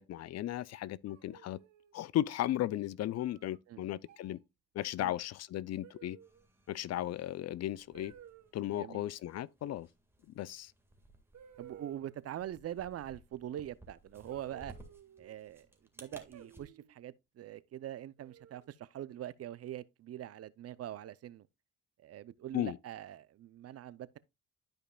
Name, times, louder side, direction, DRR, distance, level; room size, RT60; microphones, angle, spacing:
voice 1, 0.0-1.6 1.9-4.4 4.7-6.2 6.7-8.1 8.5-9.9 10.3-10.7 22.5-22.8, left 13 dB, 60° left, 0.5 m, -35 dB
sound 1, 1.1-1.9 3.2-3.6 4.0-4.4 5.8-6.5 7.9-8.5 10.5-10.6 11.3-12.3 14.3-15.3 16.3-17.0 18.2-18.8, right 9 dB, 70° right, 1.1 m, -56 dB
sound 2, 6.2-16.6, right 1 dB, 10° right, 1.7 m, -59 dB
voice 2, 11.6-14.7 15.2-15.7 16.0-21.5 22.0-24.2, right 11 dB, 55° right, 0.5 m, -43 dB
12.5 x 5.2 x 2.3 m
cardioid pair, 90°, 30 cm